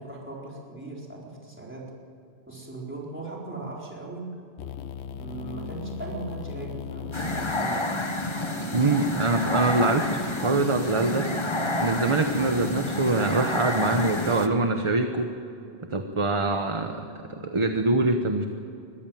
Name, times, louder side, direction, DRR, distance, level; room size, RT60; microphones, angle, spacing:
voice 1, 0.0-1.9 2.5-4.3 5.1-8.0, right 3 dB, 10° right, -4 dB, 4.2 m, -38 dB
sound 1, 4.6-10.5, left 8 dB, 85° left, 1.0 m, -39 dB
sound 2, 7.1-14.5, left 1 dB, 25° left, 1.2 m, -29 dB
voice 2, 8.7-11.3 11.8-15.3 15.9-17.0 17.3-18.5, right 2 dB, 30° right, 6 dB, 1.0 m, -24 dB
22.0 x 15.0 x 9.2 m, 2.7 s
omnidirectional pair, 1.1 m